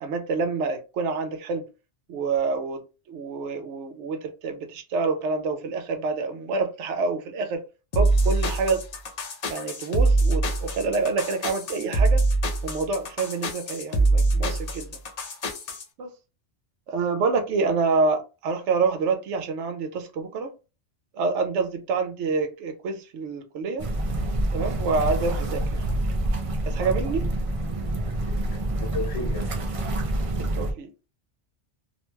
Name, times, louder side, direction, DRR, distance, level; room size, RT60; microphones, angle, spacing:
voice 1, 0.0-1.7 2.1-2.8 3.1-7.6 7.9-8.8 9.5-12.2 12.6-14.9 16.0-16.1 16.9-20.5 21.2-23.9 24.5-25.6 26.7-27.3 30.3-30.9, right 4 dB, 80° right, 0.9 m, -27 dB
sound 1, 7.9-15.8, right 2 dB, 50° left, 0.5 m, -24 dB
sound 2, 23.8-30.7, right 1 dB, 55° right, 0.4 m, -27 dB
voice 2, 27.9-29.6, left 3 dB, 70° left, 1.0 m, -36 dB
2.6 x 2.2 x 3.0 m
omnidirectional pair, 1.2 m